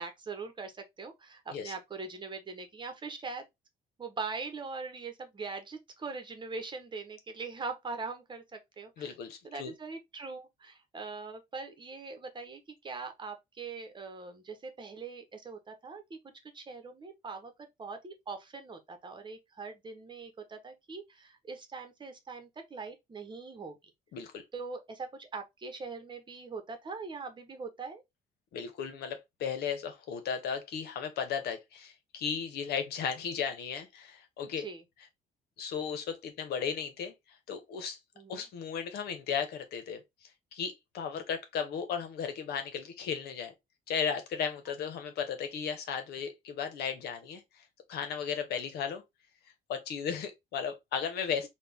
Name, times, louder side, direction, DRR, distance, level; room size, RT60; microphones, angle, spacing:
voice 1, 0.0-3.5 4.0-9.1 9.4-16.2 16.5-23.8 24.5-28.0 34.6-34.8 38.2-38.4, right 4 dB, 25° right, 1.0 m, -42 dB
voice 2, 9.0-9.7 24.1-24.4 28.5-34.7 35.6-37.1 37.5-38.0 38.3-40.0 40.5-43.5 43.9-47.6 47.9-49.0 49.7-51.5, left 7 dB, 70° left, 1.0 m, -35 dB
4.1 x 2.4 x 3.5 m
cardioid pair, 110°, 17 cm